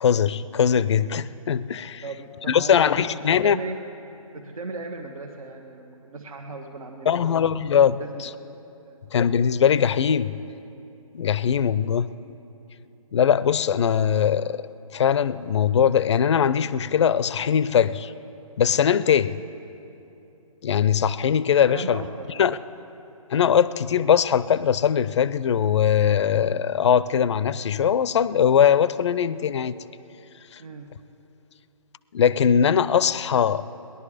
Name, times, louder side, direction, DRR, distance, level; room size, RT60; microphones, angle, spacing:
voice 1, 0.0-2.0 2.5-3.6 7.1-8.3 9.1-10.4 11.1-12.1 13.1-14.6 14.9-18.1 18.6-19.4 20.6-22.0 22.4-22.6 23.3-29.8 30.5-30.6 32.1-33.6, left 8 dB, 50° left, 17 dB, 0.5 m, -21 dB
voice 2, 2.0-3.1 3.4-3.8 4.3-7.5 8.0-9.0 21.7-22.6 30.6-30.9, right 3 dB, 75° right, 3 dB, 1.3 m, -37 dB
19.5 x 11.0 x 4.9 m, 2.9 s
hypercardioid pair, 155°, 18 cm